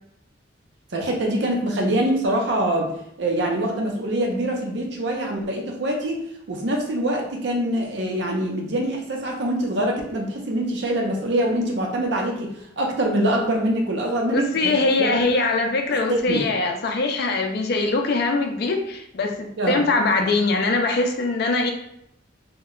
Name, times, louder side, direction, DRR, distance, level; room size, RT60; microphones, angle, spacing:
voice 1, 0.9-2.9 3.2-6.2 6.5-14.7 15.0-15.2 15.9-16.5 19.6-19.8, right 1 dB, 65° right, 1 dB, 0.6 m, -24 dB
voice 2, 14.3-21.7, left 3 dB, 60° left, 3 dB, 0.4 m, -22 dB
2.1 x 2.1 x 3.6 m, 0.74 s
head